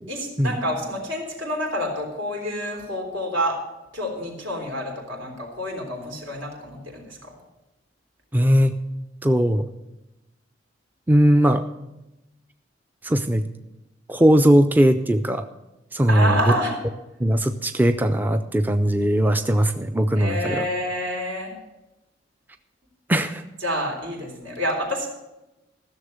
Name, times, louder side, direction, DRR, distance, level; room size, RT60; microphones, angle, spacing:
voice 1, 0.1-3.6 3.9-7.4 16.1-16.7 20.2-21.5 23.6-25.1, equal, 80° right, 0 dB, 3.6 m, -28 dB
voice 2, 8.3-8.7 9.2-9.7 11.1-11.6 13.0-13.5 14.1-15.5 15.9-16.5 17.2-20.7 23.1-23.4, equal, 10° right, 8 dB, 0.4 m, -19 dB
14.5 x 6.8 x 6.5 m, 0.97 s
head